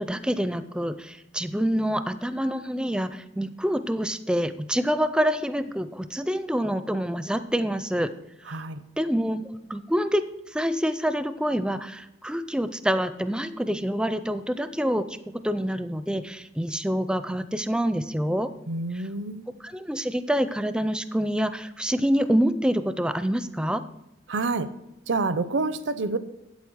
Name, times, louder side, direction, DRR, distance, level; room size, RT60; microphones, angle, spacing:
voice 1, 0.0-8.1 9.0-10.2 10.5-18.5 18.9-19.0 19.6-23.8, equal, 5° right, 12 dB, 0.4 m, -26 dB
voice 2, 8.5-8.8 18.7-19.5 24.3-24.7 25.1-26.2, right 3 dB, 75° right, 13 dB, 0.7 m, -27 dB
8.3 x 8.3 x 6.3 m, 0.90 s
head